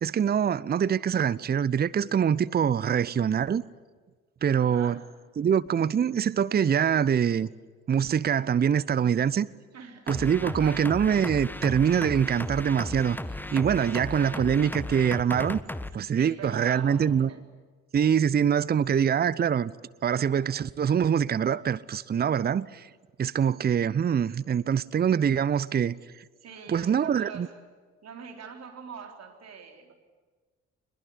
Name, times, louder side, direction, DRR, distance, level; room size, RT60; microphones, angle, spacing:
voice 1, 0.0-3.6 4.4-5.0 5.4-7.5 7.9-9.5 10.1-13.2 13.5-15.6 15.9-17.3 17.9-19.7 20.0-22.9 23.2-26.2 26.7-27.5, right 8 dB, 30° right, 0.7 m, -24 dB
voice 2, 4.5-5.1 9.7-10.9 13.9-14.7 16.1-17.4 26.4-27.6 28.0-29.9, right 6 dB, 50° right, 4.0 m, -44 dB
sound 1, 10.1-15.9, left 1 dB, 5° left, 1.2 m, -35 dB
24.0 x 22.0 x 9.8 m
figure-of-eight pair, 40°, 34 cm